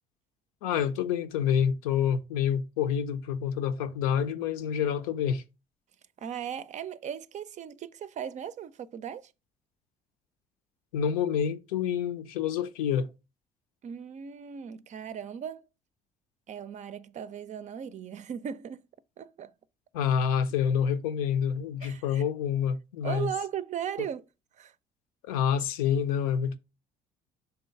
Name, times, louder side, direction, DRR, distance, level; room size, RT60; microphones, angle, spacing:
voice 1, 0.6-5.4 10.9-13.1 19.9-23.3 24.0-24.1 25.2-26.6, left 8 dB, 70° left, 0.7 m, -27 dB
voice 2, 6.2-9.3 13.8-15.7 16.5-18.8 19.2-19.5 21.8-22.2 23.0-24.2 24.6-24.7, right 9 dB, 40° right, 0.5 m, -37 dB
5.8 x 3.8 x 5.3 m
figure-of-eight pair, 50°, 19 cm